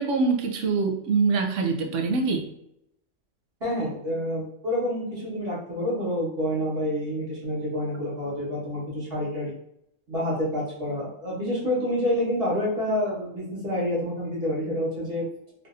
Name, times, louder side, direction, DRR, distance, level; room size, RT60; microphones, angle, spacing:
voice 1, 0.0-2.5, right 4 dB, 85° right, 4 dB, 1.0 m, -24 dB
voice 2, 3.6-9.5 10.1-15.2, left 1 dB, 55° right, -8 dB, 1.5 m, -28 dB
3.3 x 2.6 x 2.4 m, 0.77 s
omnidirectional pair, 1.2 m